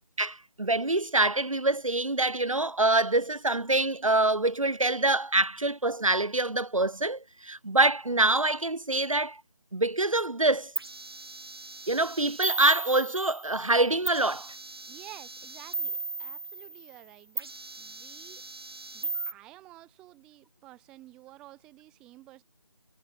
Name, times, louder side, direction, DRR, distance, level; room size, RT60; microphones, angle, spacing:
voice 1, 0.2-9.4 9.7-10.7 11.9-14.5, right 2 dB, 85° right, 3.6 m, -25 dB
sound 1, 10.8-13.7 14.1-17.0 17.4-19.3, right 3 dB, 50° right, 3.0 m, -37 dB
voice 2, 14.9-17.5 17.8-18.5 18.9-22.4, right 17 dB, 5° right, 2.7 m, -51 dB
figure-of-eight pair, 175°, 17 cm